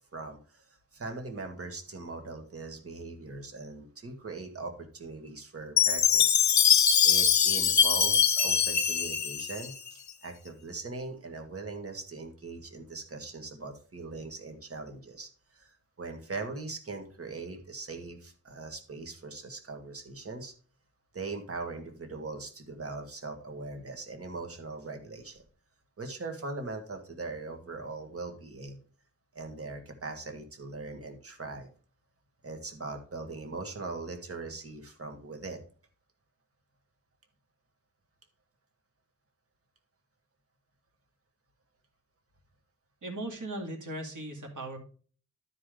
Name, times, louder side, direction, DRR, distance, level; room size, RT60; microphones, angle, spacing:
voice 1, 0.1-0.6 0.9-6.4 7.0-20.5 21.1-25.4 26.0-28.8 29.4-31.7 32.4-35.6, right 3 dB, 45° right, 5 dB, 1.8 m, -40 dB
Chime, 5.8-10.1, left 8 dB, 65° left, 0.7 m, -23 dB
voice 2, 43.0-44.8, right 1 dB, 70° right, 2 dB, 2.4 m, -38 dB
12.0 x 5.0 x 3.8 m, 0.42 s
wide cardioid pair, 105°, 31 cm